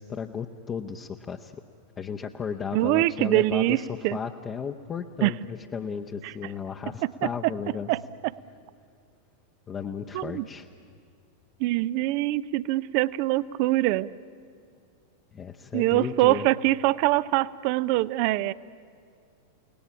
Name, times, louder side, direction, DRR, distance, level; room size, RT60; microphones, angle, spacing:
voice 1, 0.0-1.5 2.0-7.9 9.7-10.7 15.3-16.5, left 6 dB, 25° left, 2 dB, 0.9 m, -34 dB
voice 2, 2.7-4.2 5.2-5.3 6.2-6.3 7.2-7.3 7.9-8.3 10.1-10.5 11.6-14.1 15.7-18.5, right 17 dB, 45° right, 19 dB, 0.6 m, -24 dB
29.5 x 19.0 x 8.8 m, 2.3 s
figure-of-eight pair, 90°, 0 cm